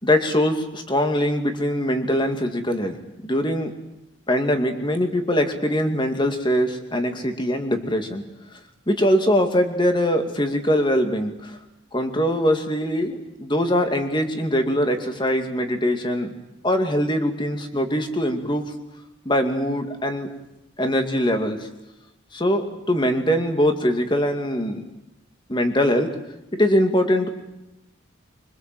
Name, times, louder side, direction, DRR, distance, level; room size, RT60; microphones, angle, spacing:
voice 1, 0.0-3.0 3.2-3.7 4.3-8.2 8.9-11.6 11.9-16.3 16.6-18.7 19.3-20.3 20.8-21.6 22.3-22.6 22.9-24.8 25.5-26.1 26.5-27.3, equal, 20° left, 5 dB, 2.3 m, -22 dB
25.0 x 24.5 x 7.8 m, 0.93 s
head